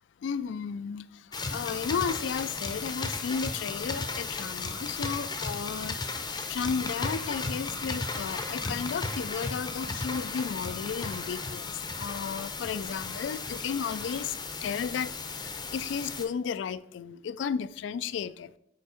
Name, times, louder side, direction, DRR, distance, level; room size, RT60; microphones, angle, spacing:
voice 1, 0.2-14.3 14.6-18.5, left 6 dB, 80° left, 0.3 m, -34 dB
sound 1, 1.3-16.2, left 4 dB, 20° left, 0.6 m, -35 dB
6.8 x 4.5 x 4.8 m
head